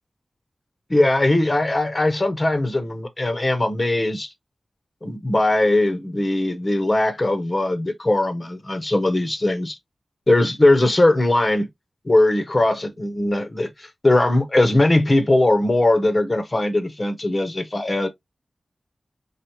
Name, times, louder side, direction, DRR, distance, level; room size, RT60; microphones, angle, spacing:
voice 1, 0.9-4.3 5.0-9.8 10.3-11.7 12.0-18.1, left 2 dB, 40° left, 1.0 m, -20 dB
4.9 x 2.4 x 3.0 m
cardioid pair, 50°, 0 cm